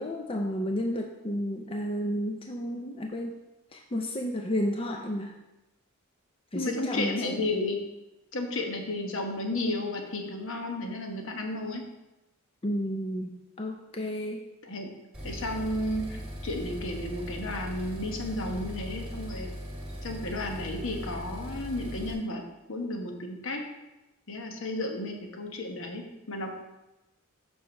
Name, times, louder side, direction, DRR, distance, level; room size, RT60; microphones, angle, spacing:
voice 1, 0.0-3.3 3.7-5.3 6.5-7.4 12.6-14.4, equal, 25° left, 3 dB, 0.5 m, -32 dB
voice 2, 6.5-7.8 8.3-11.8 14.6-14.9 15.2-19.5 20.0-22.4 22.7-23.6 24.3-26.5, left 2 dB, 65° left, 2 dB, 1.1 m, -33 dB
sound 1, 15.1-22.1, equal, 5° right, 1.8 m, -39 dB
5.5 x 4.9 x 6.1 m, 1.0 s
head